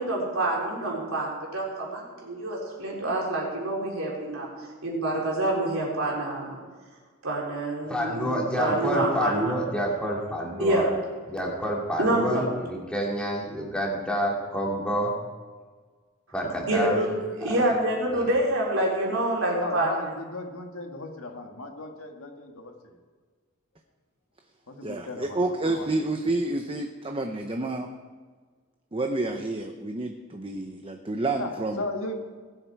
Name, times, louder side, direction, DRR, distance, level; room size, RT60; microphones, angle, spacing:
voice 1, 0.0-4.5 4.8-6.6 7.2-9.5 10.6-10.9 12.0-12.5 16.7-20.0, right 1 dB, 70° right, -3 dB, 4.0 m, -27 dB
voice 2, 7.9-10.8 11.3-15.1 16.3-17.0 17.5-17.6, equal, 5° left, -2 dB, 2.5 m, -28 dB
voice 3, 19.6-22.7 24.7-25.9 31.3-31.5 31.8-32.1, left 2 dB, 75° left, 3 dB, 1.7 m, -36 dB
voice 4, 24.8-27.9 28.9-31.8, right 2 dB, 25° right, 4 dB, 0.8 m, -29 dB
19.5 x 7.8 x 4.7 m, 1.5 s
head